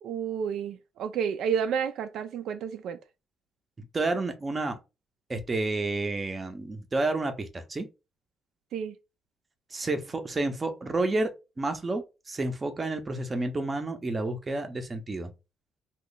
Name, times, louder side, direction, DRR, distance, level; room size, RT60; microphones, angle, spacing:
voice 1, 0.0-3.0 8.7-9.0, right 7 dB, 65° right, 0.3 m, -30 dB
voice 2, 3.9-4.8 5.3-7.9 9.7-11.3 11.6-15.3, right 2 dB, 20° right, 0.6 m, -30 dB
3.0 x 2.3 x 3.9 m
cardioid pair, 155°, 0 cm